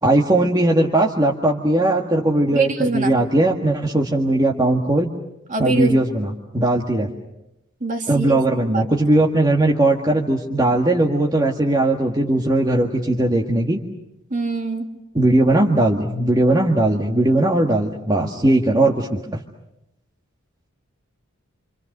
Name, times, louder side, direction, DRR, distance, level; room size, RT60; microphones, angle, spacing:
voice 1, 0.0-5.1 5.6-7.1 8.1-13.8 15.1-19.4, right 1 dB, 20° right, 0 dB, 1.7 m, -18 dB
voice 2, 2.5-3.1 5.5-6.1 7.8-8.8 14.3-14.9, right 2 dB, 40° right, 3 dB, 2.7 m, -24 dB
29.0 x 26.5 x 6.7 m, 0.88 s
head